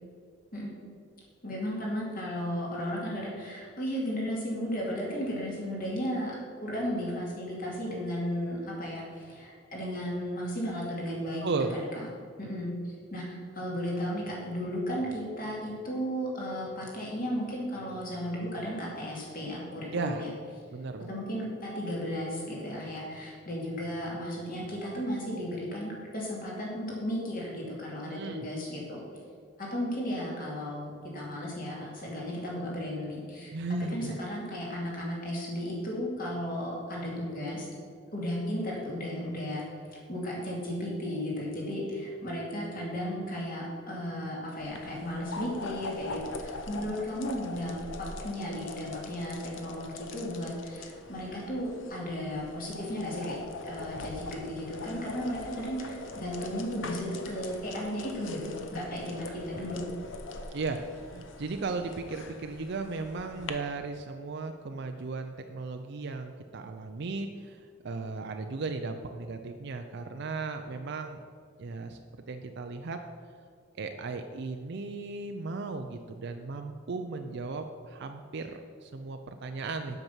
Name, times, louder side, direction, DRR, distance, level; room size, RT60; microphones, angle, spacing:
voice 1, 1.4-6.4 6.6-12.1 12.4-20.3 21.1-29.0 29.6-33.5 33.9-37.7 38.1-39.6 40.1-53.4 53.6-59.8, equal, 45° left, -3 dB, 2.7 m, -34 dB
voice 2, 11.4-11.7 19.9-20.2 20.7-21.2 28.0-28.5 33.5-34.2 60.5-60.8 61.1-71.2 71.6-72.0 72.3-73.0 73.7-80.0, right 3 dB, 60° right, 6 dB, 0.5 m, -36 dB
sound 1, 44.6-63.5, left 3 dB, 70° left, 0.9 m, -42 dB
8.0 x 6.0 x 7.3 m, 2.1 s
head